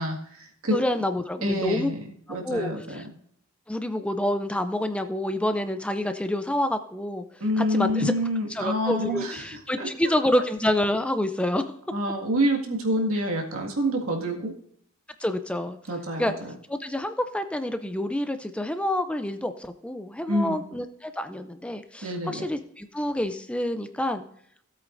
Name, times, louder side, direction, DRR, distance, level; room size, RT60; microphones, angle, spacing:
voice 1, 0.0-0.8 1.4-3.1 7.4-9.5 9.8-10.4 11.9-14.5 15.9-16.5 20.3-20.6 22.0-22.4, equal, 75° right, 0 dB, 1.9 m, -27 dB
voice 2, 0.7-1.9 2.3-3.0 3.7-8.1 8.5-11.7 15.2-15.8 16.2-16.3 16.7-24.3, left 1 dB, 5° left, 8 dB, 0.4 m, -28 dB
16.5 x 8.2 x 2.6 m, 0.66 s
head